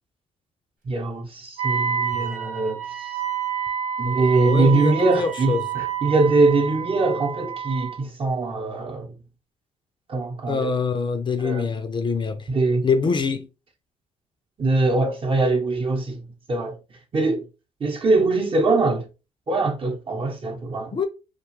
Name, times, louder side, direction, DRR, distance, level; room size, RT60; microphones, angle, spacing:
voice 1, 0.8-3.1 4.0-9.1 10.1-10.7 11.4-11.7 12.5-12.9 14.6-16.8 17.1-17.4 17.8-19.1 19.5-21.0, right 3 dB, 40° right, 0.8 m, -22 dB
Wind instrument woodwind instrument, 1.6-8.0, right 8 dB, 70° right, 0.9 m, -29 dB
voice 2, 4.4-5.7 10.5-12.5 12.8-13.5 20.9-21.1, left 5 dB, 35° left, 0.4 m, -25 dB
2.5 x 2.2 x 3.0 m
supercardioid pair, 75°, 14 cm